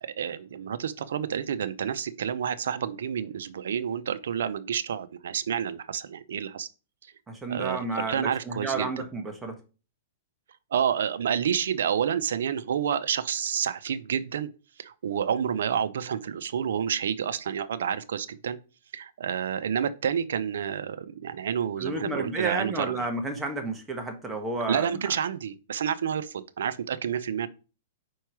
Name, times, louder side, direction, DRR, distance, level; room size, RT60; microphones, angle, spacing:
voice 1, 0.0-6.7 7.5-8.9 10.7-14.5 14.8-18.6 18.9-23.1 24.7-27.5, right 8 dB, 80° right, 0.5 m, -29 dB
voice 2, 7.3-9.6 21.8-25.1, right 3 dB, 10° right, 1.2 m, -31 dB
4.6 x 4.6 x 4.7 m
hypercardioid pair, 145°, 0 cm